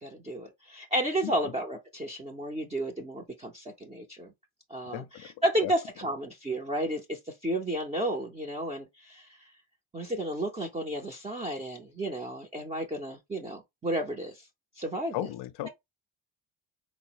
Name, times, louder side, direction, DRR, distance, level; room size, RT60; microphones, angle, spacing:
voice 1, 0.0-4.3 4.7-9.4 9.9-14.4 14.8-15.2 15.6-15.7, right 1 dB, 15° right, 0.5 m, -32 dB
voice 2, 4.9-5.3 5.6-5.7 15.1-15.7, left 14 dB, 55° left, 0.5 m, -35 dB
3.6 x 2.0 x 2.8 m
supercardioid pair, 75°, 50 cm